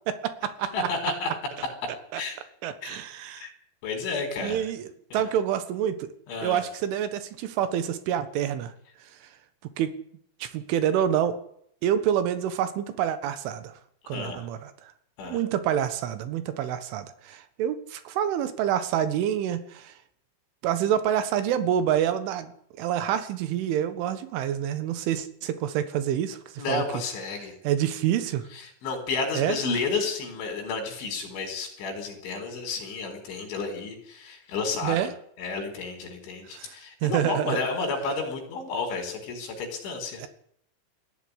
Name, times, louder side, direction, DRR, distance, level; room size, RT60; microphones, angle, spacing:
voice 1, 0.1-0.7 2.1-2.2 2.6-3.5 4.4-4.9 5.1-6.1 6.4-8.7 9.8-9.9 10.4-11.4 11.8-13.7 14.1-14.7 15.3-19.9 20.6-22.5 22.8-26.8 27.7-28.4 29.4-29.6 34.8-35.1 36.5-36.7 37.0-37.6 40.2-40.3, right 10 dB, 85° right, 11 dB, 4.0 m, -27 dB
voice 2, 0.7-1.3 2.2-2.4 2.8-3.0 3.4-3.5 3.8-4.7 5.1-5.2 6.3-6.6 14.0-14.5 15.2-15.4 26.6-27.6 28.5-35.0 35.4-40.2, left 4 dB, 75° left, 4 dB, 6.8 m, -31 dB
20.0 x 15.0 x 9.8 m, 0.67 s
omnidirectional pair, 5.5 m